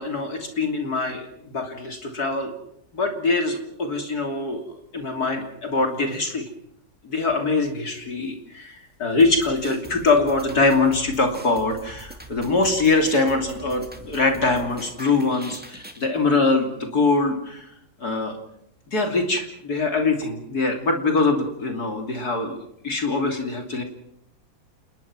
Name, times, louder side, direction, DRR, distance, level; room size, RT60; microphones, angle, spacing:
voice 1, 0.0-2.5 2.9-6.5 7.0-17.7 18.0-18.4 18.9-23.8, left 3 dB, 55° left, 4 dB, 3.5 m, -23 dB
sound 1, 9.2-16.0, right 1 dB, 5° right, 2.6 m, -43 dB
29.0 x 20.5 x 6.0 m, 0.74 s
omnidirectional pair, 2.0 m